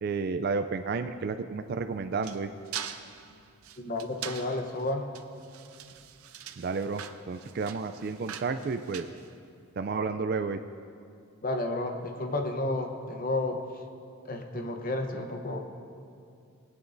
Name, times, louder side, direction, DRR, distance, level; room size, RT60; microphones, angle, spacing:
voice 1, 0.0-2.5 6.6-9.1 9.8-10.6, right 4 dB, 45° right, 9 dB, 0.3 m, -31 dB
sound 1, 1.6-9.9, right 9 dB, 90° right, 0.6 m, -43 dB
voice 2, 3.8-5.0 11.4-13.6 14.2-15.6, left 2 dB, 40° left, 4 dB, 0.8 m, -31 dB
20.0 x 9.3 x 2.6 m, 2.4 s
head